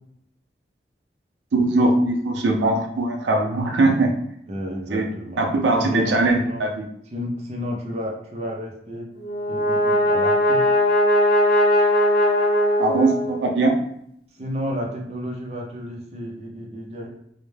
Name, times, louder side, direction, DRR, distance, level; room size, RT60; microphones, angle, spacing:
voice 1, 1.6-4.1 4.9-5.0 5.4-6.8 12.8-13.7, right 2 dB, 90° right, 2 dB, 0.4 m, -20 dB
voice 2, 4.5-5.5 5.7-6.6 7.1-9.1 9.5-10.6 14.3-17.1, equal, 35° right, -1 dB, 0.5 m, -31 dB
Brass instrument, 9.2-13.6, left 1 dB, 65° left, 0.8 m, -19 dB
2.2 x 2.0 x 3.1 m, 0.72 s
head